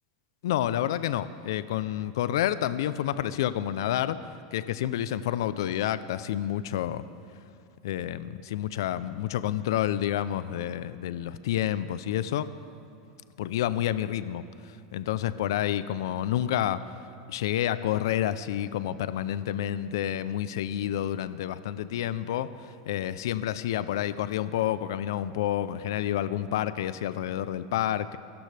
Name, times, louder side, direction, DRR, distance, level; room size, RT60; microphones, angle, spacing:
voice 1, 0.4-4.2 4.5-7.0 7.8-12.5 13.4-14.4 14.9-16.8 17.3-28.2, left 11 dB, 80° left, 14 dB, 0.5 m, -29 dB
24.5 x 13.0 x 3.4 m, 2.5 s
supercardioid pair, 140°, 2 cm